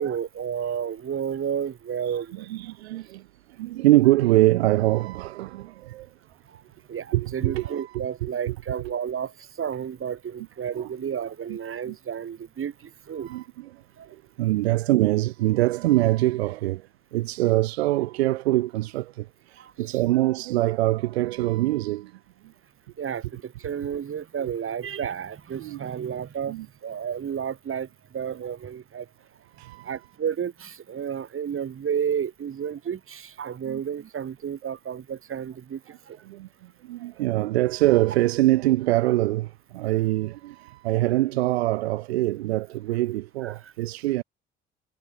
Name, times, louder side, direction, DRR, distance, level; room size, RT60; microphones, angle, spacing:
voice 1, 0.0-2.5 6.5-6.6 6.9-13.3 14.0-14.1 19.6-20.0 23.0-29.1 29.8-35.8 36.1-36.2 43.4-43.7, right 8 dB, 40° right, 4.9 m, -32 dB
voice 2, 2.5-3.2 3.6-6.1 7.1-7.9 8.2-8.3 10.7-10.9 11.5-11.6 11.9-12.0 13.2-13.7 14.4-16.8 17.1-19.3 19.5-22.1 25.6-25.8 26.5-26.7 29.6-29.9 33.6-33.8 36.3-36.5 36.9-44.2, right 17 dB, 75° right, 1.2 m, -24 dB
figure-of-eight pair, 50°, 32 cm